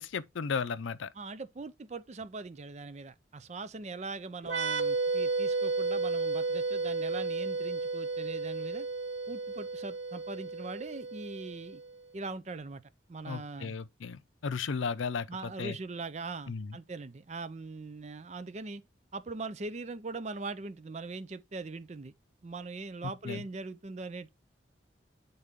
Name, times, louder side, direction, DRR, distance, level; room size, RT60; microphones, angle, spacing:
voice 1, 0.0-1.1 13.3-15.3 15.6-15.8 16.5-16.7 23.0-23.4, left 5 dB, 75° left, 0.5 m, -35 dB
voice 2, 1.1-8.9 9.3-11.8 12.1-12.8 13.1-13.8 15.3-18.8 19.1-22.1 22.4-24.3, right 3 dB, 35° right, 0.5 m, -41 dB
sound 1, 4.4-11.9, right 3 dB, 70° right, 0.9 m, -33 dB
8.1 x 4.0 x 3.6 m
head